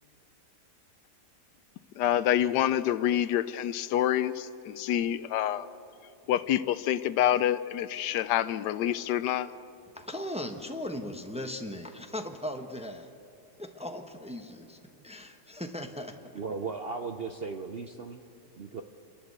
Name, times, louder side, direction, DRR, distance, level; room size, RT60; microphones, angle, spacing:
voice 1, 2.0-5.7 6.3-9.5, left 11 dB, 85° left, 15 dB, 1.2 m, -27 dB
voice 2, 9.9-13.1 13.6-14.8 15.0-16.2, left 1 dB, 5° right, 5 dB, 0.8 m, -38 dB
voice 3, 16.3-18.2 18.6-18.8, right 4 dB, 55° right, 6 dB, 0.7 m, -36 dB
28.5 x 11.5 x 8.1 m, 2.6 s
omnidirectional pair, 1.8 m